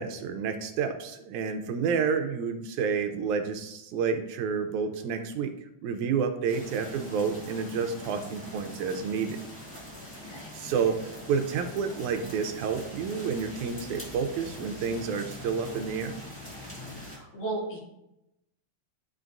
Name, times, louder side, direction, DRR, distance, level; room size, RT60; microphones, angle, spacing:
voice 1, 0.0-5.5 5.8-9.4 10.5-11.0 11.3-16.2, right 6 dB, 85° right, 7 dB, 2.2 m, -29 dB
sound 1, 6.5-17.2, left 1 dB, 5° left, 1.0 m, -43 dB
voice 2, 16.9-17.8, right 3 dB, 75° left, -4 dB, 3.5 m, -35 dB
12.0 x 4.3 x 2.6 m, 0.86 s
omnidirectional pair, 3.4 m